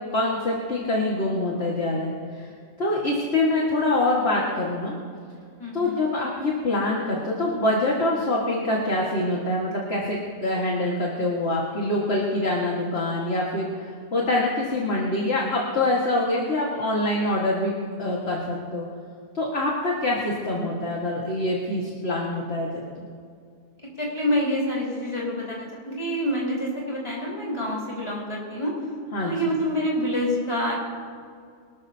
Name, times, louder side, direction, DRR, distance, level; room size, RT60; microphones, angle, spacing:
voice 1, 0.1-2.5 2.8-4.9 5.7-17.7 18.0-18.9 19.3-22.8 29.1-29.3, left 2 dB, 40° left, -3 dB, 1.9 m, -25 dB
voice 2, 5.6-6.0 24.0-28.7 29.2-30.8, equal, 15° left, -5 dB, 4.4 m, -27 dB
24.5 x 13.0 x 2.8 m, 2.2 s
omnidirectional pair, 1.8 m